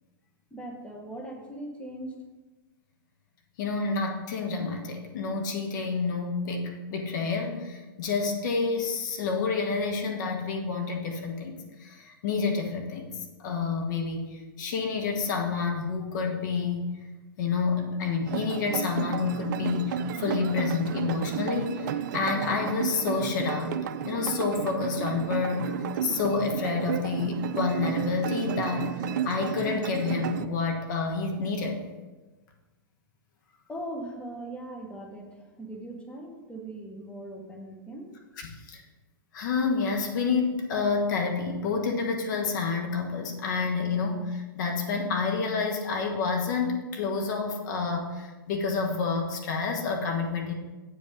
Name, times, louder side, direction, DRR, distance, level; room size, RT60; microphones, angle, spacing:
voice 1, 0.5-2.2 33.7-38.1, right 1 dB, 10° left, 2 dB, 1.2 m, -40 dB
voice 2, 3.6-16.9 17.4-23.8 24.0-25.7 26.0-31.8 38.4-38.8 39.3-50.5, left 4 dB, 55° left, 2 dB, 1.2 m, -29 dB
sound 1, 18.3-30.5, right 9 dB, 55° right, 0.4 m, -32 dB
8.4 x 5.3 x 5.1 m, 1.2 s
figure-of-eight pair, 105°, 12 cm